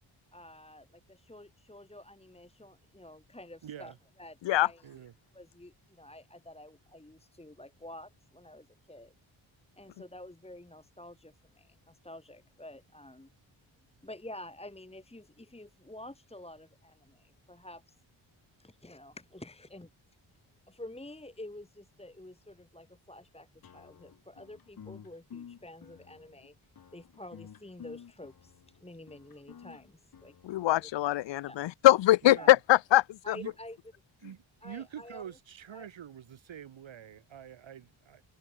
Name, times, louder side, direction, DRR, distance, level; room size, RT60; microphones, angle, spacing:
voice 1, 0.3-4.9 5.3-9.1 9.8-13.3 14.0-18.0 18.6-19.9 20.7-26.5 26.9-30.3 30.6-30.9 31.5-31.6 32.4-32.5 33.2-33.8 34.6-35.4 35.7-35.9, left 1 dB, 10° left, 2.1 m, -49 dB
voice 2, 3.6-4.0 4.8-5.1 32.2-32.6 33.3-33.5 34.2-38.2, right 9 dB, 65° right, 1.3 m, -45 dB
sound 1, 23.6-31.0, left 8 dB, 45° left, 1.0 m, -52 dB
voice 3, 30.4-33.0 33.3-33.4, left 15 dB, 60° left, 0.5 m, -22 dB
cardioid pair, 60°, 50 cm